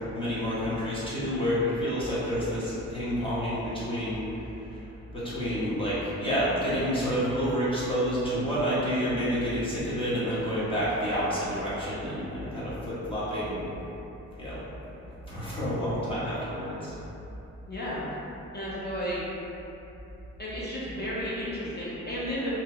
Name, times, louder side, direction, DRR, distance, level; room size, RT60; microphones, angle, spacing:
voice 1, 0.0-4.8 5.1-13.7 14.4-14.6 15.3-16.9, equal, 15° left, -10 dB, 1.0 m, -29 dB
voice 2, 17.7-18.0 18.5-19.2 20.4-22.6, equal, 35° left, -8 dB, 0.6 m, -33 dB
2.8 x 2.1 x 2.8 m, 3.0 s
cardioid pair, 95°, 30 cm